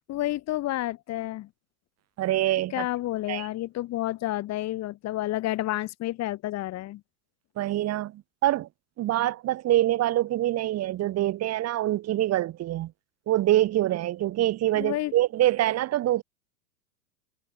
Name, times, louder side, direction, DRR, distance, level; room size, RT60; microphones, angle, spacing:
voice 1, 0.1-1.5 2.7-7.0 14.7-15.1, left 15 dB, 35° left, 2.1 m, -30 dB
voice 2, 2.2-2.9 3.3-3.5 7.6-8.7 9.0-12.9 13.3-16.2, right 14 dB, 35° right, 2.3 m, -25 dB
hypercardioid pair, 100°, 46 cm